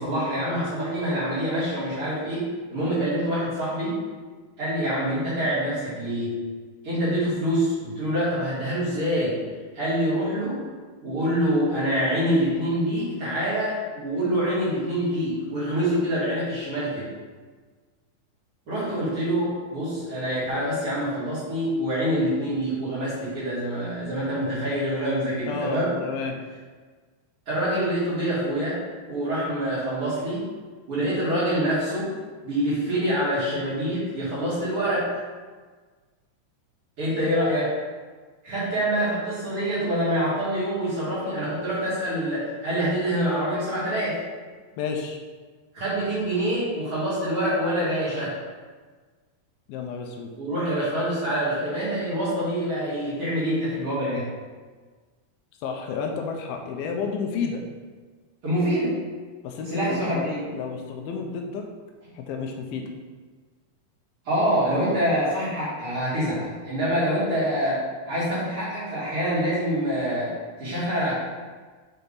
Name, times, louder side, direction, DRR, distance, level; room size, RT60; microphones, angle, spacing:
voice 1, 0.0-4.0 4.6-6.4 6.8-9.4 9.7-10.6 11.0-17.1 18.7-25.9 27.5-28.8 29.1-30.4 30.9-32.1 32.4-35.1 37.0-37.7 38.4-44.2 45.7-48.3 50.4-54.2 58.4-58.9 59.7-60.4 64.2-67.8 68.1-70.3 70.6-71.1, equal, 40° right, -10 dB, 2.6 m, -25 dB
voice 2, 25.5-26.4 44.8-45.2 49.7-50.3 55.6-57.6 59.4-61.7 62.1-62.8, left 5 dB, 80° left, 2 dB, 2.4 m, -31 dB
7.0 x 4.4 x 4.0 m, 1.4 s
omnidirectional pair, 4.4 m